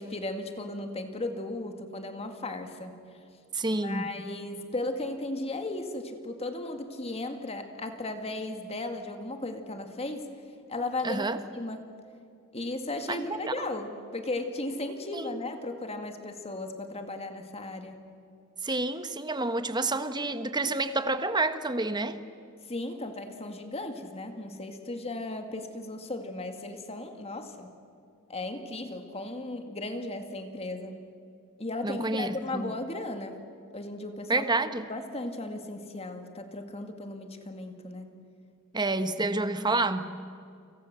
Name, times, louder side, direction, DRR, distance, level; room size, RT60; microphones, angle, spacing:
voice 1, 0.0-2.9 3.7-10.3 10.7-11.3 11.5-11.9 12.5-18.0 22.6-27.7 28.3-31.0 31.6-33.4 33.7-34.5 34.9-38.1, left 2 dB, 30° left, 6 dB, 2.1 m, -36 dB
voice 2, 3.5-4.1 11.0-11.4 13.1-13.5 15.1-15.4 18.6-22.2 31.8-32.7 34.3-34.8 38.7-40.1, right 2 dB, 20° right, 10 dB, 1.3 m, -29 dB
29.5 x 26.0 x 7.6 m, 2.4 s
head